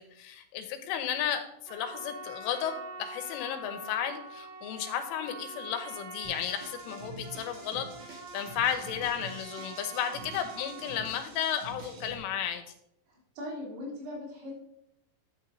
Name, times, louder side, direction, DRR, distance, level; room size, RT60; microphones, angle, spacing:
voice 1, 0.0-12.6, left 9 dB, 90° left, 7 dB, 3.3 m, -33 dB
Trumpet, 1.6-11.1, right 2 dB, 75° right, 5.2 m, -45 dB
sound 1, 6.2-12.2, right 3 dB, 50° right, 2.2 m, -47 dB
voice 2, 13.1-14.5, left 1 dB, 90° right, -5 dB, 6.1 m, -40 dB
11.5 x 8.8 x 2.7 m, 0.77 s
omnidirectional pair, 5.7 m